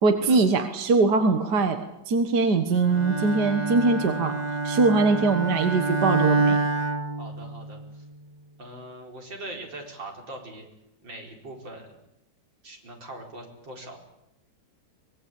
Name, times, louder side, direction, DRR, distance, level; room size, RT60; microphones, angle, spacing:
voice 1, 0.0-4.4 4.6-6.6, right 3 dB, 65° right, 7 dB, 2.0 m, -22 dB
Bowed string instrument, 2.9-7.9, right 3 dB, 30° right, 1.0 m, -27 dB
voice 2, 7.2-8.0 8.6-10.7 11.0-11.9 12.6-14.0, right 1 dB, 90° right, 1 dB, 5.2 m, -41 dB
24.0 x 20.5 x 8.4 m, 0.86 s
omnidirectional pair, 2.0 m